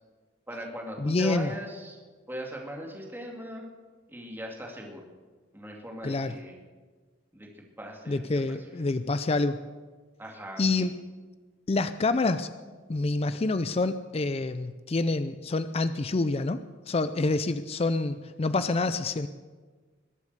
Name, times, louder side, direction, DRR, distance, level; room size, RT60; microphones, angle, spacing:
voice 1, 0.5-2.0 2.3-3.6 4.1-5.0 5.5-6.6 7.3-8.9 10.2-10.9 18.5-18.7, equal, 10° right, 0 dB, 2.3 m, -40 dB
voice 2, 1.0-1.5 6.0-6.4 8.1-9.6 10.6-10.9 11.7-12.5 12.9-19.3, left 3 dB, 30° left, 12 dB, 0.4 m, -27 dB
21.5 x 8.5 x 6.8 m, 1.4 s
head